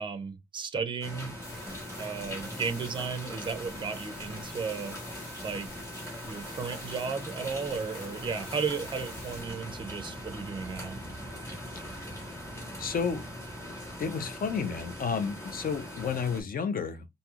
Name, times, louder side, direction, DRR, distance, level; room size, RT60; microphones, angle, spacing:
voice 1, 0.0-1.3 2.0-5.0 5.4-5.7 6.3-11.0, right 5 dB, 25° right, 0.4 m, -34 dB
sound 1, 1.0-16.4, equal, 15° left, 1.2 m, -41 dB
sound 2, 1.4-9.4, left 2 dB, 70° left, 1.5 m, -48 dB
voice 2, 11.8-12.3 12.8-13.2 14.0-17.1, left 6 dB, 55° left, 0.5 m, -32 dB
3.1 x 2.6 x 2.4 m
wide cardioid pair, 180°, 18 cm